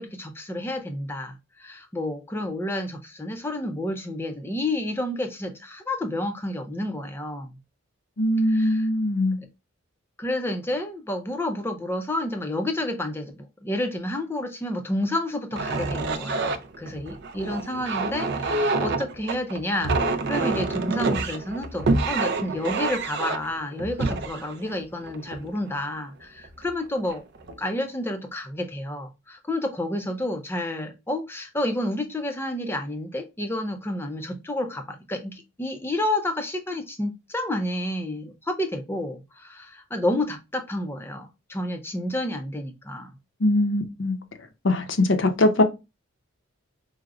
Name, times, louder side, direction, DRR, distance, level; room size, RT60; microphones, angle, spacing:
voice 1, 0.0-7.6 8.4-8.9 10.2-27.2 27.6-43.2, left 1 dB, 10° left, 0.5 m, -30 dB
voice 2, 8.2-9.4 43.4-44.2 44.6-45.6, left 1 dB, 60° left, 0.6 m, -21 dB
sound 1, 15.5-25.8 26.4-26.7 27.1-27.6, right 3 dB, 50° right, 0.4 m, -27 dB
4.7 x 2.0 x 2.3 m
head